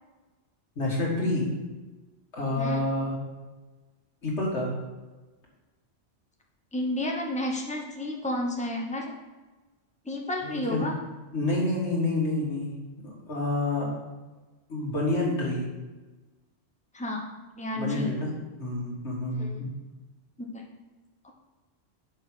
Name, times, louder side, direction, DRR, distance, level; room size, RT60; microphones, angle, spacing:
voice 1, 0.8-1.5 2.3-3.1 4.2-4.7 10.4-10.8 11.3-12.7 13.0-13.9 14.7-15.7 17.8-18.3 18.6-19.7, left 2 dB, 80° left, -3 dB, 2.1 m, -28 dB
voice 2, 6.7-9.1 10.0-11.0 16.9-17.2 17.5-18.1 19.3-19.7 20.5-20.7 21.2-21.3, left 1 dB, 5° left, 0 dB, 0.9 m, -31 dB
6.4 x 4.8 x 6.2 m, 1.2 s
omnidirectional pair, 1.2 m